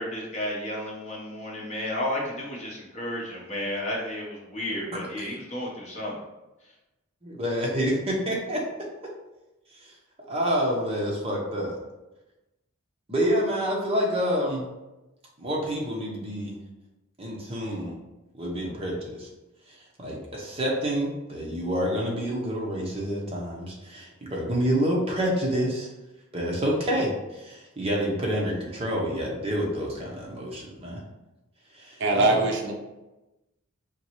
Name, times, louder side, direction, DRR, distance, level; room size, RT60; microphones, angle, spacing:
voice 1, 0.0-6.2, left 1 dB, 30° left, -3 dB, 1.0 m, -32 dB
voice 2, 7.2-8.9 9.8-9.9 10.3-11.8 13.1-14.6 15.4-16.6 17.2-18.0 18.3-19.3 19.7-25.9 26.3-31.0 31.7-32.5, equal, 25° right, -2 dB, 0.8 m, -28 dB
voice 3, 32.0-32.7, right 2 dB, 55° right, 2 dB, 0.5 m, -22 dB
4.4 x 3.1 x 3.0 m, 1.0 s
head